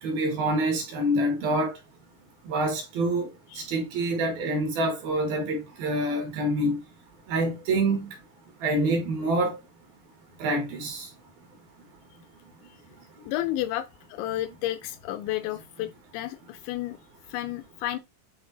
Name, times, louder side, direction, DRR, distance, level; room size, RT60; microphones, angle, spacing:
voice 1, 0.0-1.7 2.5-3.3 3.6-6.8 7.3-8.1 8.6-9.6 10.4-11.1, right 1 dB, 65° right, 2.7 m, -26 dB
voice 2, 13.3-17.0 17.3-18.0, left 14 dB, 85° left, 2.8 m, -32 dB
9.3 x 3.2 x 4.0 m
omnidirectional pair, 5.5 m